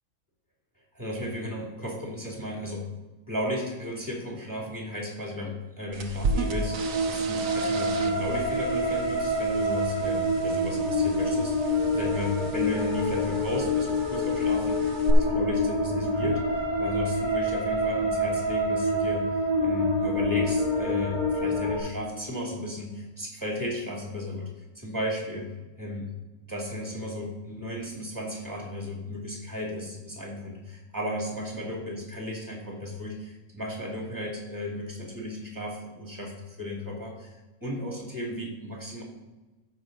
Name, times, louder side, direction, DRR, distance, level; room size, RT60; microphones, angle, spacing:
voice 1, 0.9-2.9 3.3-19.3 19.6-24.5 24.7-25.5 25.8-26.0 26.5-37.3 37.6-39.0, left 1 dB, 15° right, -2 dB, 2.5 m, -34 dB
sound 1, 5.9-15.1, right 3 dB, 70° right, 1.2 m, -36 dB
sound 2, 6.2-21.8, equal, 55° left, 2.6 m, -27 dB
14.0 x 5.8 x 3.9 m, 1.2 s
omnidirectional pair, 1.5 m